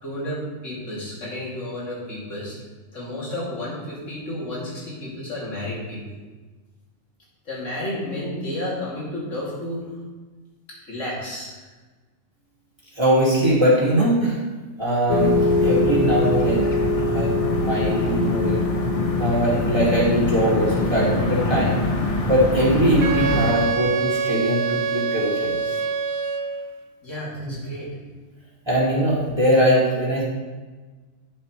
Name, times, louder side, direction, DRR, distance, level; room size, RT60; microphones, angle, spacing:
voice 1, 0.0-2.6 2.9-6.0 7.5-9.8 10.9-11.5 27.0-27.9, left 1 dB, 70° left, -7 dB, 3.0 m, -31 dB
voice 2, 12.9-14.4 14.8-16.6 17.1-18.6 19.1-21.9 22.3-25.8 27.4-27.5 28.7-30.2, right 1 dB, 20° right, -8 dB, 2.7 m, -21 dB
sound 1, 15.1-23.5, left 2 dB, 30° left, 0.8 m, -22 dB
Wind instrument woodwind instrument, 23.0-26.7, right 5 dB, 60° right, 0.6 m, -25 dB
11.0 x 7.5 x 3.2 m, 1.3 s
omnidirectional pair, 1.4 m